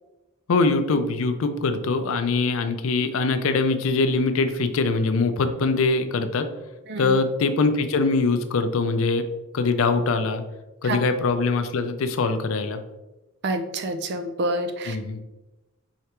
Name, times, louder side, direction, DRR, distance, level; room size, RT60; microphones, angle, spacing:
voice 1, 0.5-6.5 7.0-9.2 9.5-10.4 10.8-12.8 14.9-15.2, left 3 dB, 70° left, 9 dB, 0.4 m, -23 dB
voice 2, 13.4-15.0, right 1 dB, 50° right, 7 dB, 0.4 m, -27 dB
4.7 x 3.2 x 2.9 m, 1.0 s
head